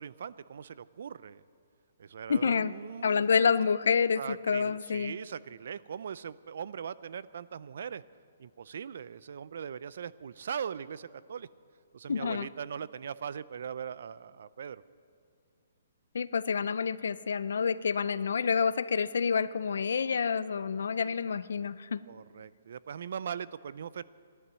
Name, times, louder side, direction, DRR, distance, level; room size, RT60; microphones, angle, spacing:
voice 1, 0.0-1.4 2.0-3.2 4.2-8.0 8.4-11.5 11.9-14.8 22.1-24.0, right 7 dB, 55° right, 18 dB, 0.4 m, -40 dB
voice 2, 2.3-2.7 3.0-4.2 4.5-5.1 12.1-12.5 16.1-22.0, left 6 dB, 70° left, 16 dB, 0.5 m, -28 dB
15.0 x 11.5 x 7.5 m, 2.3 s
hypercardioid pair, 175°, 0 cm